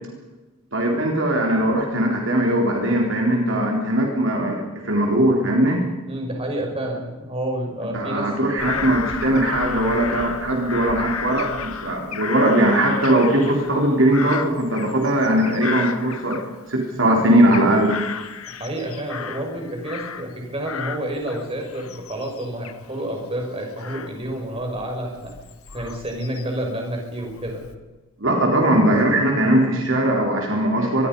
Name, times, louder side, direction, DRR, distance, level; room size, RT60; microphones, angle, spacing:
voice 1, 0.7-5.9 7.9-16.4 16.7-18.0 28.2-31.1, right 1 dB, 60° right, 0 dB, 3.7 m, -20 dB
voice 2, 6.1-8.3 18.5-25.3 25.7-27.7, right 1 dB, 25° right, 1 dB, 5.8 m, -29 dB
Bird vocalization bird call bird song / Crow, 8.6-16.9 17.2-20.4 20.6-26.7 27.2-27.7, left 6 dB, 85° left, 1.7 m, -33 dB
25.5 x 21.5 x 5.5 m, 1.2 s
head